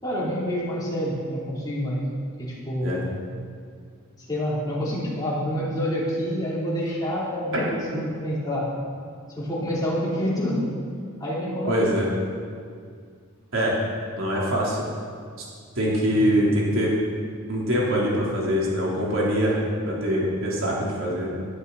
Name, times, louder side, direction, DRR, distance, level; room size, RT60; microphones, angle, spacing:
voice 1, 0.0-2.1 2.4-3.0 4.2-8.7 9.3-10.7 11.2-11.8 16.1-16.3, equal, 20° left, -7 dB, 3.4 m, -27 dB
voice 2, 11.7-12.1 13.5-13.7 14.2-14.8 15.7-16.9 17.5-21.4, equal, 70° right, -5 dB, 3.5 m, -23 dB
18.0 x 11.0 x 4.1 m, 2.1 s
head